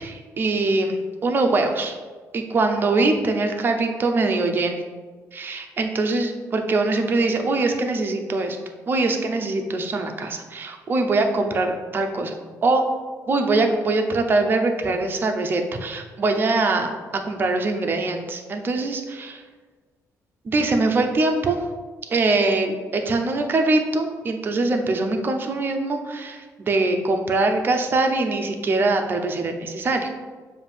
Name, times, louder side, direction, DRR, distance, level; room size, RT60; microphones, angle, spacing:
voice 1, 0.0-2.0 2.3-4.8 5.3-8.6 8.9-12.4 12.6-12.8 13.3-19.4 20.4-21.6 22.1-30.1, right 3 dB, 35° right, 4 dB, 0.7 m, -23 dB
7.0 x 2.7 x 5.2 m, 1.4 s
cardioid pair, 140°, 6 cm